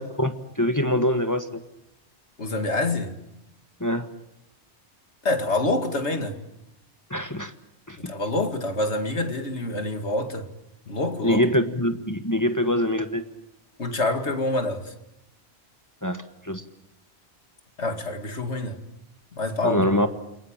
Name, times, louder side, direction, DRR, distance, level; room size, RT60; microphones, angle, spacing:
voice 1, 0.0-1.6 3.8-4.1 7.1-7.5 7.9-8.1 11.2-13.2 16.0-16.6 19.6-20.1, left 1 dB, 15° left, 1.4 m, -24 dB
voice 2, 2.4-3.1 5.2-6.4 8.0-10.5 10.9-11.4 13.8-14.9 17.8-18.8 19.3-19.9, left 2 dB, 90° left, 2.6 m, -26 dB
28.5 x 22.5 x 8.9 m
omnidirectional pair, 1.1 m